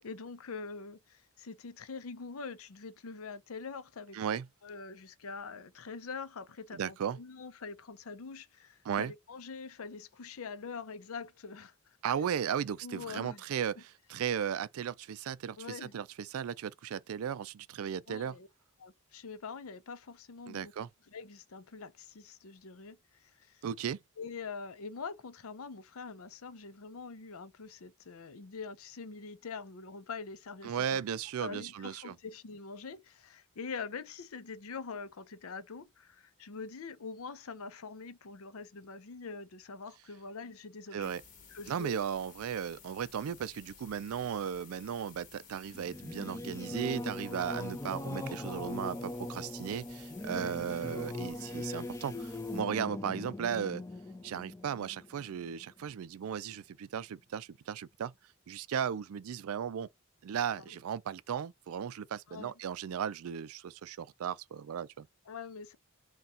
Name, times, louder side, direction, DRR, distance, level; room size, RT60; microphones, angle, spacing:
voice 1, 0.0-4.2 4.6-12.0 12.8-13.4 13.8-13.9 15.6-15.9 18.1-18.5 18.8-20.7 21.1-23.6 24.2-31.0 31.4-41.1 41.5-42.0 50.6-50.9 60.6-60.8 62.3-62.5 65.3-65.8, left 4 dB, 70° left, 0.6 m, -44 dB
voice 2, 4.1-4.5 6.7-7.2 8.8-9.1 12.0-18.4 20.5-20.9 23.6-24.0 30.6-32.1 40.9-41.2 41.7-53.8 54.2-58.1 58.5-59.9 60.2-65.1, right 8 dB, 70° right, 0.4 m, -36 dB
sound 1, 41.0-52.6, left 6 dB, 35° left, 1.2 m, -55 dB
Singing / Musical instrument, 45.7-55.8, left 2 dB, 15° left, 0.4 m, -40 dB
4.1 x 2.3 x 3.6 m
head